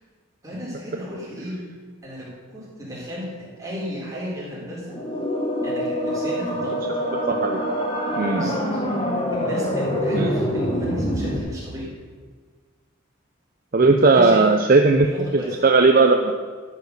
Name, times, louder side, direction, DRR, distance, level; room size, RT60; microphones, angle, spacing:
voice 1, 0.4-1.6 2.0-5.0 5.6-6.9 8.3-8.8 9.3-11.9 14.0-14.6 15.0-15.6, equal, 15° right, -6 dB, 3.9 m, -34 dB
sound 1, 4.9-11.4, equal, 25° left, 1.4 m, -25 dB
voice 2, 7.3-7.6 8.2-8.5 10.1-10.3 13.7-16.3, right 3 dB, 45° right, 4 dB, 0.6 m, -17 dB
12.5 x 7.2 x 6.6 m, 1.5 s
head